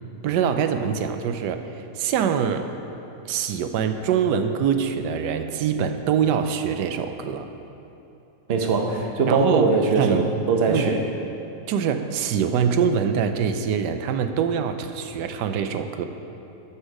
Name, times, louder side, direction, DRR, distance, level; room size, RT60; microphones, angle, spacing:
voice 1, 0.2-2.7 3.3-7.5 9.3-9.7 10.0-10.3 10.7-10.9 11.7-16.1, right 7 dB, 90° right, 8 dB, 1.2 m, -24 dB
voice 2, 8.5-11.0, right 4 dB, 45° right, 3 dB, 1.0 m, -21 dB
12.5 x 7.3 x 4.8 m, 2.9 s
omnidirectional pair, 1.8 m